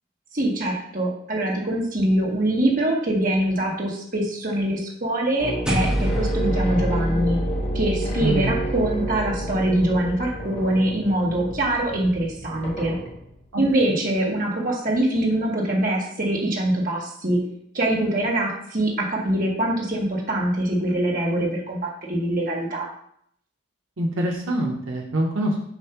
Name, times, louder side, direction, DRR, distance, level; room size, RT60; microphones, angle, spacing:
voice 1, 0.3-7.4 7.7-13.0 13.6-17.4 17.7-22.9, right 1 dB, 40° right, -2 dB, 1.3 m, -23 dB
sound 1, 5.4-13.4, equal, 30° left, 1.0 m, -31 dB
sound 2, 5.6-10.3, right 1 dB, 5° right, 0.8 m, -27 dB
voice 2, 8.2-8.5 13.5-14.0 24.0-25.6, right 1 dB, 80° right, 0 dB, 1.0 m, -25 dB
7.1 x 2.7 x 5.8 m, 0.69 s
head